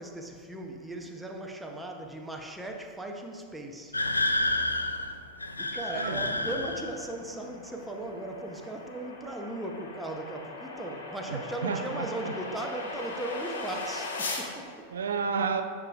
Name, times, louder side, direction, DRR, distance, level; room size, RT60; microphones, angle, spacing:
voice 1, 0.0-4.0 5.6-14.9, right 1 dB, 5° right, 2 dB, 0.6 m, -37 dB
sound 1, 3.9-7.1, left 2 dB, 80° left, 0.3 m, -29 dB
sound 2, 5.8-14.5, left 3 dB, 65° left, 0.9 m, -40 dB
voice 2, 5.9-6.3 11.3-12.3 14.9-15.6, right 5 dB, 70° right, 7 dB, 0.3 m, -31 dB
Thunder, 6.0-9.9 10.2-10.3, left 1 dB, 25° left, 1.3 m, -50 dB
9.8 x 4.9 x 2.3 m, 2.2 s
figure-of-eight pair, 90°, 0 cm